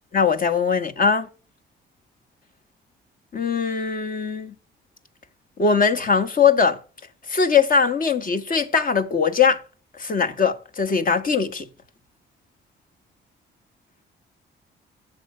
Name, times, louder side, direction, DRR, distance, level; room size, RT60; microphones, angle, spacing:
voice 1, 0.1-1.3 3.3-4.5 5.6-6.8 7.3-9.6 9.9-11.6, left 6 dB, 45° left, 1.6 m, -20 dB
8.3 x 7.8 x 8.9 m
cardioid pair, 90°, 20 cm